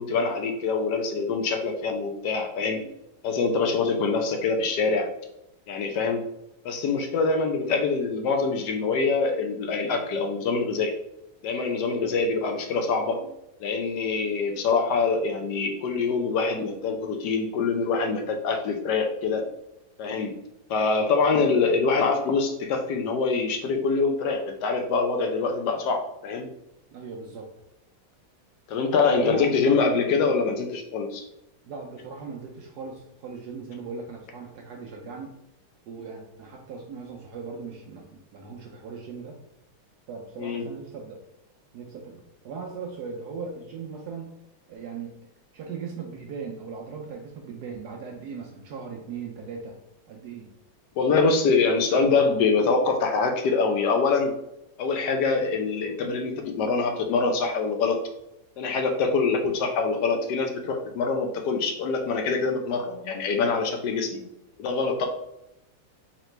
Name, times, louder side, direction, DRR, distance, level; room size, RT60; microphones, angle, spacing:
voice 1, 0.0-2.9 3.2-5.1 5.7-6.2 6.6-10.9 11.4-13.3 13.6-19.5 20.0-20.3 20.7-26.5 28.7-31.3 40.4-40.7 51.0-54.3 54.8-58.0 58.6-64.2 64.6-65.1, left 4 dB, 75° left, 4 dB, 1.0 m, -24 dB
voice 2, 26.9-27.5 29.1-29.5 31.7-35.3 35.9-39.4 40.1-41.2 41.7-44.3 44.7-45.2 45.5-49.8 50.1-50.5, right 5 dB, 70° right, 0 dB, 1.0 m, -38 dB
4.0 x 3.0 x 3.1 m, 0.85 s
omnidirectional pair, 2.2 m